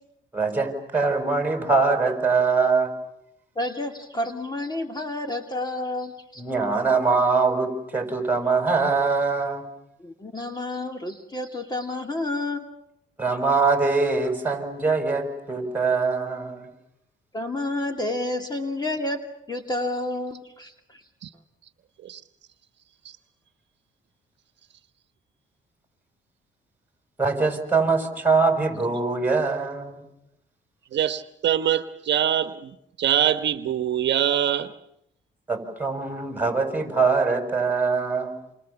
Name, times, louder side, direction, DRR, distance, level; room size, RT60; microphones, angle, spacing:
voice 1, 0.3-2.9 6.4-9.6 13.2-16.6 27.2-30.0 35.5-38.3, right 4 dB, 10° right, 5 dB, 7.0 m, -23 dB
voice 2, 3.6-6.4 10.0-12.7 17.3-19.2 19.5-21.0, left 2 dB, 20° left, 5 dB, 2.7 m, -30 dB
voice 3, 30.9-34.7, right 10 dB, 60° right, 10 dB, 1.2 m, -24 dB
29.0 x 28.0 x 7.2 m, 0.81 s
cardioid pair, 90°, 20 cm